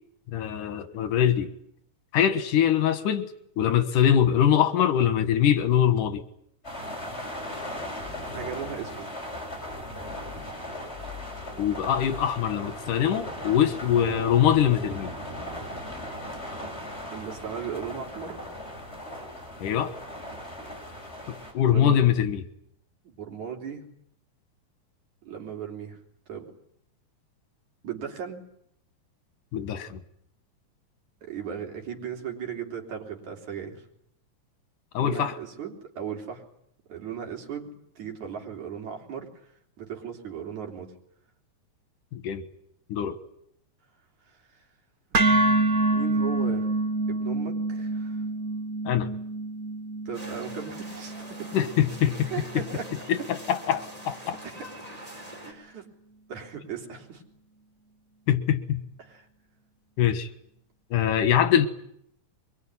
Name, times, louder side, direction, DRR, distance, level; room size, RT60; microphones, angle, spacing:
voice 1, 0.3-1.5 2.1-3.3 3.6-6.2 11.6-15.1 19.6-19.9 21.3-22.4 29.5-30.0 34.9-35.3 42.1-42.4 42.9-43.2 48.9-49.1 51.5-52.3 53.1-54.4 58.3-58.8 60.0-60.3 60.9-61.7, left 9 dB, 85° left, 10 dB, 3.0 m, -23 dB
sound 1, 6.6-21.5, left 1 dB, 20° left, 6.7 m, -38 dB
voice 2, 7.8-9.1 17.1-18.4 21.7-22.0 23.0-23.9 25.2-26.0 26.3-26.5 27.8-28.4 31.2-33.9 34.9-36.4 36.9-39.5 39.8-40.9 44.3-44.7 45.1-46.7 47.1-48.2 50.1-51.5 52.3-52.9 54.2-54.7 55.4-55.9 56.3-57.2 59.0-59.3, right 7 dB, 70° right, 1 dB, 4.9 m, -37 dB
sound 2, 45.1-53.2, right 2 dB, 35° right, 1.6 m, -27 dB
sound 3, 50.1-55.5, equal, 10° right, 5.7 m, -43 dB
23.5 x 22.0 x 9.9 m, 0.71 s
omnidirectional pair, 3.6 m